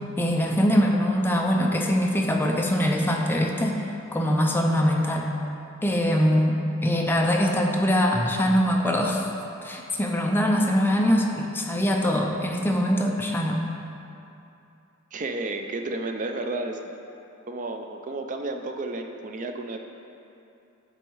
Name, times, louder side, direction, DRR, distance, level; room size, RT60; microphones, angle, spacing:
voice 1, 0.2-3.8 4.1-5.3 5.8-9.2 9.6-13.6, equal, 10° left, 0 dB, 0.5 m, -23 dB
voice 2, 15.1-16.8 17.5-19.8, right 2 dB, 40° right, 5 dB, 0.5 m, -32 dB
7.9 x 4.1 x 4.6 m, 2.8 s
head